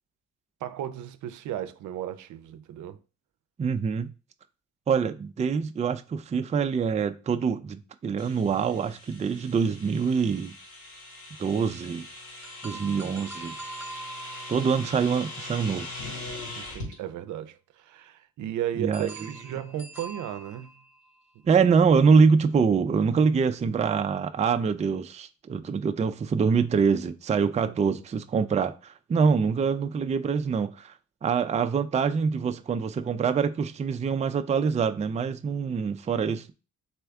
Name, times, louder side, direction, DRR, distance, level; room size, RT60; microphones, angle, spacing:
voice 1, 0.6-3.0 14.5-14.6 16.6-20.7 27.6-28.0, right 11 dB, 75° right, 0.6 m, -35 dB
voice 2, 3.6-4.1 4.9-10.5 11.4-12.1 12.6-13.5 14.5-15.9 18.8-19.1 21.5-30.9 31.2-36.5, right 5 dB, 25° right, 0.4 m, -25 dB
sound 1, 8.2-16.9, left 2 dB, 75° left, 2.3 m, -41 dB
sound 2, 12.4-16.5 18.9-21.3, right 3 dB, 5° right, 0.8 m, -44 dB
4.3 x 3.4 x 3.5 m
cardioid pair, 90°, 30 cm